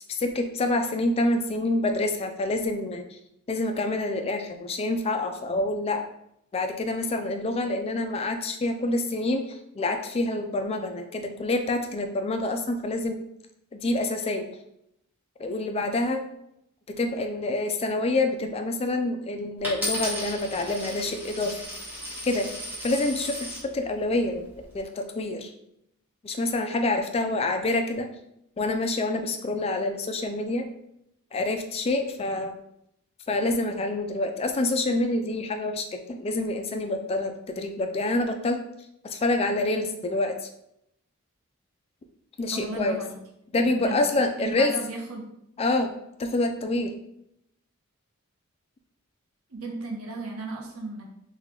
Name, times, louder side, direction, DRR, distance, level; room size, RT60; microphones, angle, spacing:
voice 1, 0.2-3.2 3.5-6.0 6.5-13.2 13.7-14.5 15.4-16.2 16.9-21.6 22.2-22.5 22.8-24.4 24.7-25.5 26.2-28.1 28.6-30.7 31.3-32.5 33.3-38.6 39.1-40.5 42.4-43.0 43.5-44.7 45.6-45.9 46.2-46.9, left 2 dB, 30° left, 6 dB, 0.3 m, -27 dB
Coin (dropping), 19.6-23.7 24.4-24.8, equal, 10° right, 1.0 m, -34 dB
voice 2, 42.5-43.1 43.8-44.0 44.4-45.2 49.5-51.0, right 2 dB, 90° right, 0 dB, 0.8 m, -35 dB
3.2 x 2.3 x 3.6 m, 0.78 s
head